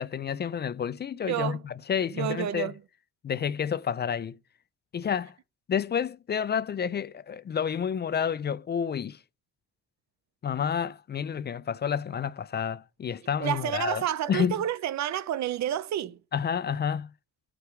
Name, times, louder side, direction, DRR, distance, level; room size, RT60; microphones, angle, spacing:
voice 1, 0.0-2.7 3.2-4.4 4.9-5.3 5.7-9.2 10.4-14.0 14.3-14.5 16.3-17.1, left 7 dB, 35° left, 0.4 m, -29 dB
voice 2, 1.3-1.6 2.1-2.8 13.4-16.2, right 11 dB, 65° right, 0.7 m, -30 dB
5.0 x 4.8 x 5.8 m
cardioid pair, 90°, 30 cm